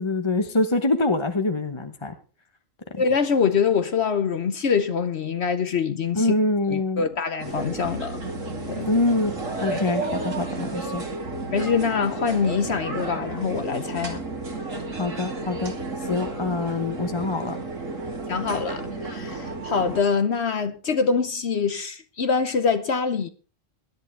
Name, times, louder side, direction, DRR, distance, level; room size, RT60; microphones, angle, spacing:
voice 1, 0.0-2.1 2.9-3.0 6.1-7.0 8.9-9.3 9.6-11.0 15.0-15.7 16.1-17.6, left 2 dB, 25° left, 0.9 m, -24 dB
voice 2, 2.9-6.3 6.7-8.2 8.7-8.9 9.7-9.8 11.5-14.2 18.3-23.3, left 6 dB, 60° left, 1.1 m, -24 dB
sound 1, 7.4-20.0, right 2 dB, 75° right, 3.0 m, -32 dB
20.5 x 11.0 x 3.3 m
omnidirectional pair, 1.3 m